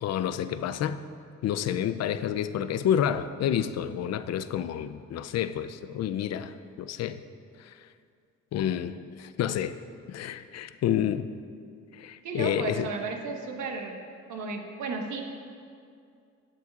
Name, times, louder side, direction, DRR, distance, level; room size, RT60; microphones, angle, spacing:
voice 1, 0.0-1.0 1.4-7.2 7.6-7.7 8.5-9.8 10.1-11.3 11.9-12.9, left 10 dB, 60° left, 13 dB, 0.4 m, -29 dB
voice 2, 12.2-14.0 14.3-15.2, right 4 dB, 75° right, 2 dB, 1.2 m, -34 dB
13.0 x 9.1 x 2.4 m, 2.3 s
cardioid pair, 90°, 30 cm